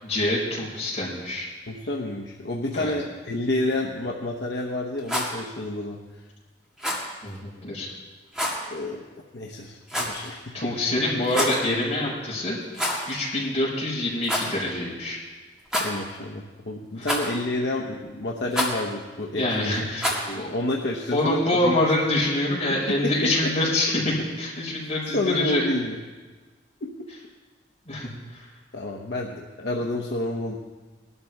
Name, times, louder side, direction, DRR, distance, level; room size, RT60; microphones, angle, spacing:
voice 1, 0.0-1.5 2.7-2.9 7.2-7.9 10.2-12.6 13.1-15.2 17.0-17.1 19.4-20.5 21.1-25.7 27.9-28.5, left 1 dB, 35° left, -6 dB, 5.3 m, -26 dB
voice 2, 1.7-6.2 8.7-9.1 9.3-10.7 15.7-19.8 20.3-21.8 22.9-23.5 25.1-26.0 28.7-30.6, left 1 dB, 65° left, -1 dB, 1.0 m, -29 dB
Rattle, 4.9-5.3 6.8-7.1 8.3-8.6 9.9-10.3 11.2-11.6 12.7-13.1 13.4-13.5 14.2-14.5 15.7-16.2 17.1-17.5 18.5-18.8 20.0-20.3, equal, 5° right, 2.1 m, -27 dB
19.5 x 12.5 x 3.6 m, 1.3 s
head